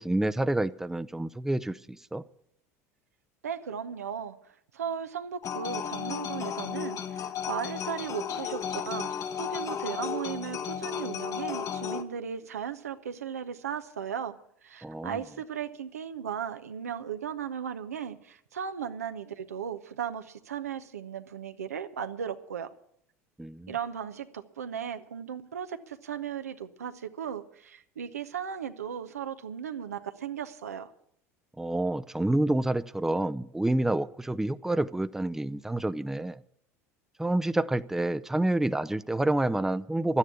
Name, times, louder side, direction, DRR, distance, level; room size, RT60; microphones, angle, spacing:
voice 1, 0.0-2.2 14.8-15.2 23.4-23.7 31.6-36.4 37.2-40.2, right 1 dB, 5° right, 13 dB, 0.5 m, -28 dB
voice 2, 3.4-4.4 4.7-14.4 14.6-22.7 23.7-30.9, right 8 dB, 90° right, 9 dB, 0.8 m, -36 dB
sound 1, 5.4-12.0, left 8 dB, 40° left, 1.1 m, -34 dB
12.0 x 9.7 x 8.4 m, 0.69 s
hypercardioid pair, 80°, 8 cm